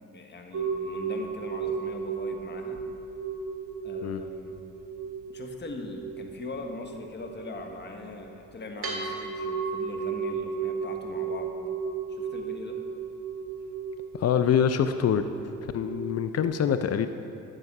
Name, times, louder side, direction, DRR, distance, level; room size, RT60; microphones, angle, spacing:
voice 1, 0.1-2.8 3.8-4.5 5.3-11.5 12.1-12.8, left 3 dB, 35° left, 4 dB, 1.4 m, -41 dB
sound 1, 0.5-16.4, right 5 dB, 50° right, 2.1 m, -35 dB
voice 2, 14.1-15.2 15.7-17.1, left 8 dB, 55° left, 9 dB, 0.6 m, -25 dB
12.5 x 7.6 x 6.0 m, 2.5 s
cardioid pair, 90°, 30 cm